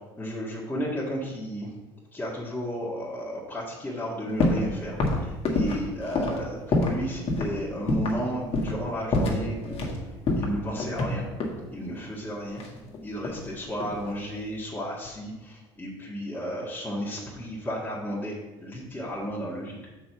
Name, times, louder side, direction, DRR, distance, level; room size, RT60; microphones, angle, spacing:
voice 1, 0.2-1.7 2.1-9.9 10.4-11.3 11.7-12.6 13.0-18.3 18.6-19.8, equal, 15° left, -6 dB, 1.9 m, -33 dB
sound 1, 4.4-4.7 5.0-7.0 7.3-7.5 7.9-8.2 8.5-8.8 9.1-10.0 10.3-11.6 12.6-13.5 13.8-14.2, left 2 dB, 45° left, 1.8 m, -26 dB
6.1 x 4.7 x 5.9 m, 1.1 s
hypercardioid pair, 70°, 14 cm